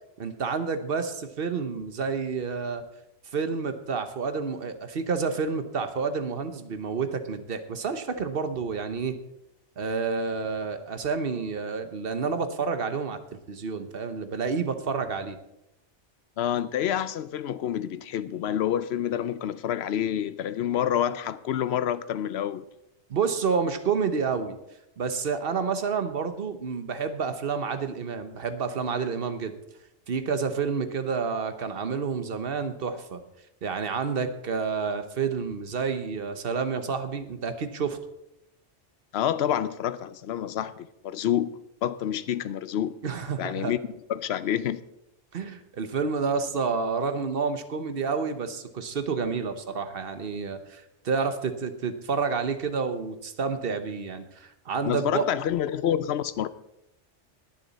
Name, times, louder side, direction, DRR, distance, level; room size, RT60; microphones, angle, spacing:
voice 1, 0.2-2.8 3.3-9.2 9.8-13.2 13.5-15.4 23.1-24.6 25.0-29.6 30.1-33.2 33.6-38.0 43.0-43.7 45.3-55.2, right 5 dB, 55° right, 1.1 m, -29 dB
voice 2, 16.4-22.6 39.1-43.0 43.4-43.8 44.1-44.8 54.8-56.5, left 10 dB, 65° left, 0.8 m, -28 dB
20.5 x 7.1 x 4.1 m
omnidirectional pair, 1.2 m